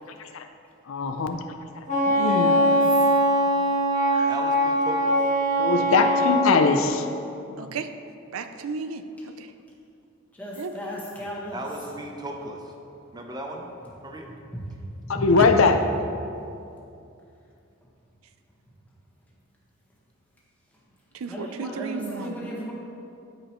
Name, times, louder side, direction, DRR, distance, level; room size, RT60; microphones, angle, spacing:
voice 1, 0.9-1.4 2.2-2.5 4.1-4.3 5.6-7.0 7.5-7.7 15.1-15.8, left 4 dB, 75° left, 7 dB, 0.5 m, -21 dB
Wind instrument woodwind instrument, 1.9-6.5, equal, 35° left, 1.7 m, -21 dB
voice 2, 2.0-2.9 10.3-11.6 14.5-14.6 15.0-15.5 21.3-22.7, equal, 10° left, -6 dB, 1.5 m, -35 dB
voice 3, 4.3-5.2 11.5-12.6 13.1-13.7 14.0-14.3, right 1 dB, 20° right, 2 dB, 0.7 m, -36 dB
voice 4, 7.6-7.9 8.3-9.5 10.6-10.7 15.4-15.5 21.1-22.5, right 5 dB, 90° right, 9 dB, 0.5 m, -34 dB
13.0 x 5.2 x 3.1 m, 2.6 s
head